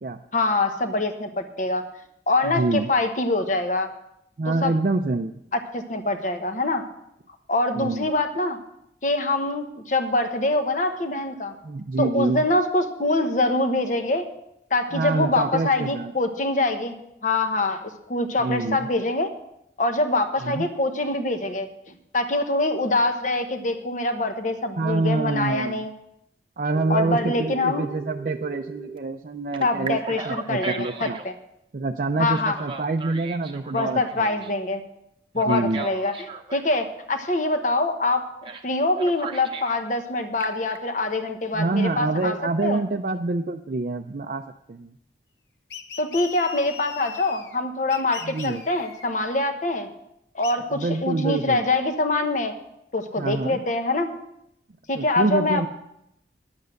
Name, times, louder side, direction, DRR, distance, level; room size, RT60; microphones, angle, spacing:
voice 1, 0.3-1.9 2.3-3.9 4.5-4.7 5.7-6.8 7.5-8.6 9.0-11.5 12.0-14.2 14.7-17.0 17.2-19.3 19.8-25.9 26.9-27.9 29.6-31.3 32.2-32.6 33.7-34.8 35.3-36.1 36.5-38.2 38.6-42.3 42.6-42.8 46.0-49.9 50.3-52.5 52.9-54.1 54.9-55.7, left 2 dB, 45° left, 7 dB, 1.1 m, -24 dB
voice 2, 2.4-2.9 4.4-5.4 7.8-8.1 11.6-12.4 14.9-16.1 18.4-18.9 20.4-20.7 24.8-25.8 26.6-30.0 30.3-31.2 31.7-34.4 35.5-35.8 41.5-44.4 44.7-44.9 48.2-48.6 50.7-51.6 53.2-53.6 54.9-55.7, right 3 dB, 50° right, 4 dB, 0.4 m, -26 dB
Telephone, 26.7-29.0 29.5-31.3 32.3-34.5 35.3-36.7 38.4-38.7 39.0-39.8 40.2-40.8, right 4 dB, 30° right, 0.8 m, -36 dB
sound 1, 45.7-47.6 47.9-49.1 50.4-50.5, left 6 dB, 70° left, 0.9 m, -38 dB
10.5 x 8.1 x 6.4 m, 0.79 s
head